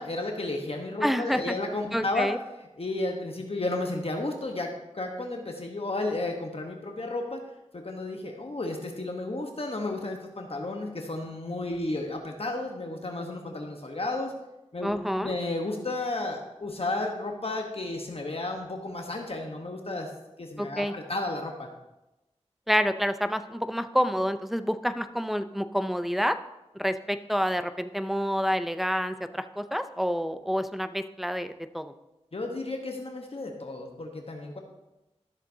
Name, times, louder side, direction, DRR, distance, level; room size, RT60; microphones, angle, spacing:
voice 1, 0.0-2.3 2.8-7.4 7.7-14.3 14.7-20.1 20.4-21.7 32.3-34.6, left 2 dB, 55° left, 2 dB, 1.1 m, -33 dB
voice 2, 1.0-1.5 1.9-2.4 14.8-15.3 20.6-20.9 22.7-26.4 26.7-31.9, equal, ahead, 10 dB, 0.5 m, -28 dB
13.0 x 7.3 x 2.7 m, 0.98 s
wide cardioid pair, 50°, 12 cm